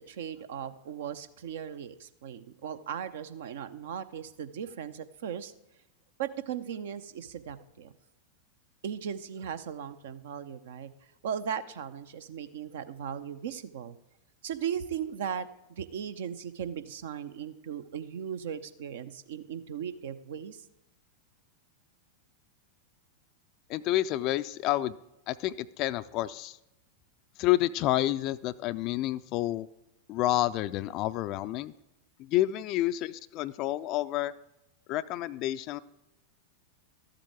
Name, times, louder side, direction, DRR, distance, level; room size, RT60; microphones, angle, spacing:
voice 1, 0.0-5.5 6.2-7.9 8.8-10.9 11.2-14.0 14.4-15.5 15.8-20.6, right 8 dB, 60° right, 12 dB, 0.6 m, -37 dB
voice 2, 23.7-25.0 25.3-26.6 27.4-29.7 30.1-31.7 32.2-34.3 34.9-35.8, left 15 dB, 40° left, 13 dB, 0.4 m, -29 dB
13.5 x 7.6 x 4.7 m, 0.94 s
figure-of-eight pair, 90°, 0 cm